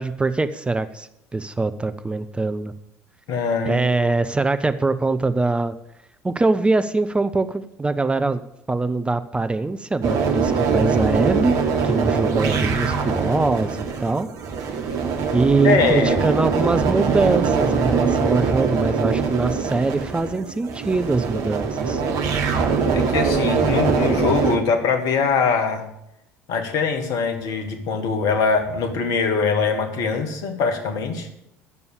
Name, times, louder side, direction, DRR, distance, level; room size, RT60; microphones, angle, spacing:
voice 1, 0.0-2.7 3.7-5.8 6.2-8.4 8.7-11.5 11.8-14.3 15.3-22.0, right 3 dB, 15° right, 11 dB, 0.6 m, -23 dB
voice 2, 3.3-4.1 15.6-16.2 22.9-25.9 26.5-31.3, left 5 dB, 55° left, 6 dB, 1.7 m, -22 dB
sound 1, 10.0-24.6, right 5 dB, 50° right, 1.3 m, -22 dB
9.7 x 6.9 x 8.2 m, 0.80 s
figure-of-eight pair, 60°, 7 cm